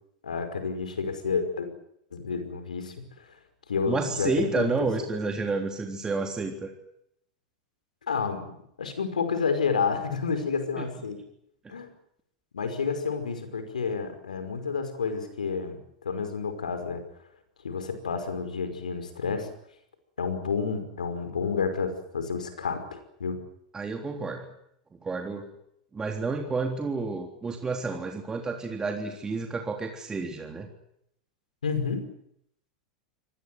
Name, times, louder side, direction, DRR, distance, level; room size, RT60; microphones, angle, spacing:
voice 1, 0.2-1.7 2.1-3.0 3.7-4.9 8.1-11.2 11.7-11.9 12.5-17.0 17.6-19.5 20.2-23.4 31.6-32.0, left 5 dB, 85° left, 9 dB, 5.4 m, -30 dB
voice 2, 3.9-6.7 10.8-10.9 23.7-24.5 25.0-25.5 25.9-30.7, right 4 dB, 15° right, 3 dB, 3.6 m, -30 dB
24.5 x 19.5 x 9.4 m, 0.74 s
hypercardioid pair, 100°, 4 cm